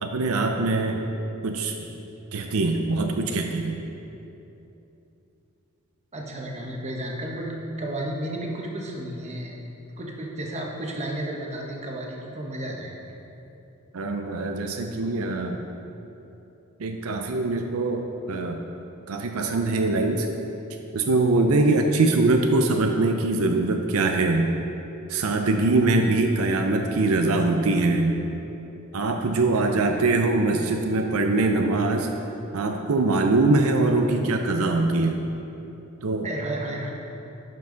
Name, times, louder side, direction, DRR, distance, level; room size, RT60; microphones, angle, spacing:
voice 1, 0.0-1.0 1.4-1.7 2.3-3.8 13.9-15.6 16.8-18.6 19.1-20.3 20.9-24.5 25.1-28.1 28.9-32.1 32.5-35.2 36.0-36.3, right 2 dB, 85° right, 4 dB, 0.6 m, -23 dB
voice 2, 6.1-9.6 10.0-12.9 29.5-29.7 36.2-36.9, right 1 dB, 30° right, -1 dB, 1.0 m, -32 dB
10.5 x 5.6 x 3.9 m, 2.9 s
head